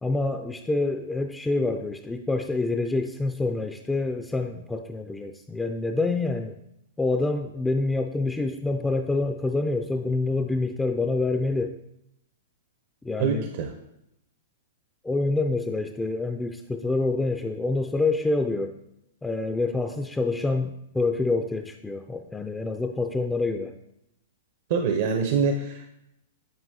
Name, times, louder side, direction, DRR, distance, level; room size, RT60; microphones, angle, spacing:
voice 1, 0.0-6.6 7.0-11.8 13.0-13.5 15.0-18.7 19.2-23.7, left 3 dB, 10° left, 5 dB, 0.3 m, -27 dB
voice 2, 13.2-13.7 24.7-25.9, right 5 dB, 55° right, 4 dB, 0.6 m, -25 dB
9.2 x 4.5 x 2.7 m, 0.82 s
hypercardioid pair, 120°, 0 cm